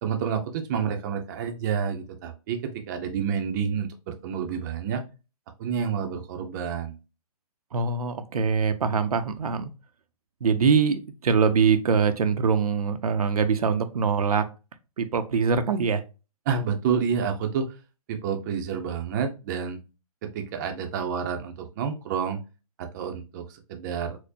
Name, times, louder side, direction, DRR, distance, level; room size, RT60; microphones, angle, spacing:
voice 1, 0.0-5.0 5.6-7.0 16.5-17.7 18.1-19.8 20.2-22.4 22.8-24.2, right 7 dB, 30° right, 4 dB, 0.5 m, -29 dB
voice 2, 7.7-9.7 10.4-14.5 15.0-16.0, right 5 dB, 80° right, 8 dB, 0.5 m, -23 dB
4.3 x 2.1 x 2.7 m, 0.30 s
hypercardioid pair, 145°, 19 cm